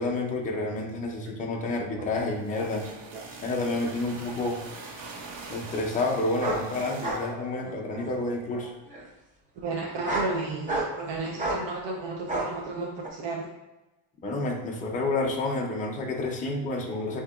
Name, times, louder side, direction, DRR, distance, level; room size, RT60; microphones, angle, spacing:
voice 1, 0.0-2.9 3.4-4.6 5.5-8.7 14.2-17.2, left 2 dB, 20° left, 0 dB, 0.3 m, -29 dB
sound 1, 2.1-7.3, right 4 dB, 80° right, 1.4 m, -43 dB
sound 2, 6.4-6.6 7.0-7.3 7.6-8.2 8.9-9.0 9.9-10.3 10.7-11.0 11.4-11.6 12.3-12.5 13.0-13.1, right 2 dB, 15° right, 0.6 m, -30 dB
voice 2, 7.8-8.5 9.6-13.5, right 3 dB, 60° right, -1 dB, 0.7 m, -34 dB
8.2 x 2.8 x 2.3 m, 1.0 s
cardioid pair, 180°, 48 cm